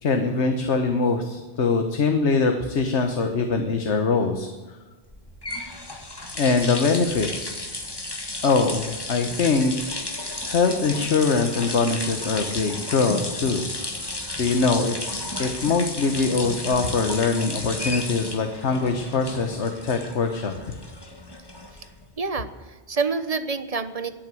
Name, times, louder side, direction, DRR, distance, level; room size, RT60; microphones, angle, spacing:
voice 1, 0.0-4.8 6.3-7.6 8.4-9.7 10.4-13.7 14.4-14.9 15.4-20.8, left 4 dB, 85° left, 6 dB, 1.5 m, -23 dB
sound 1, 5.1-22.1, left 2 dB, 20° left, 1.5 m, -33 dB
voice 2, 22.2-24.1, right 4 dB, 35° right, 11 dB, 0.9 m, -27 dB
20.0 x 9.1 x 7.7 m, 1.3 s
omnidirectional pair, 1.1 m